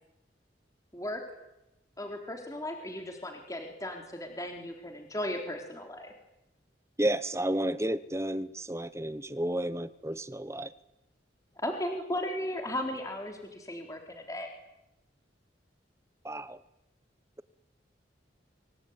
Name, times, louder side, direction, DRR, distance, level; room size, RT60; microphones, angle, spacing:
voice 1, 2.0-6.1 11.6-14.5, left 1 dB, 15° left, 3 dB, 3.9 m, -36 dB
voice 2, 7.0-10.7 16.2-16.6, right 1 dB, 15° right, 15 dB, 1.0 m, -31 dB
26.0 x 23.5 x 9.7 m, 0.90 s
head